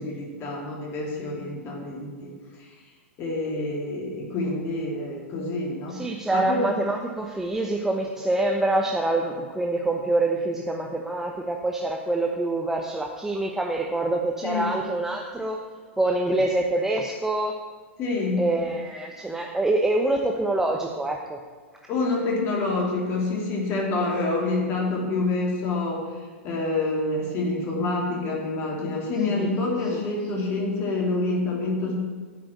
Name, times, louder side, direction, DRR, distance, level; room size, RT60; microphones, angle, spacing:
voice 1, 0.0-2.3 3.2-6.0 6.3-6.7 14.4-14.6 18.0-18.4 21.9-26.1 26.4-31.9, left 2 dB, 35° left, -2 dB, 3.1 m, -27 dB
voice 2, 5.9-15.6 16.0-17.5 18.4-21.4 29.3-29.5, right 2 dB, 5° right, 1 dB, 0.9 m, -25 dB
10.0 x 6.1 x 8.3 m, 1.5 s
figure-of-eight pair, 105°, 7 cm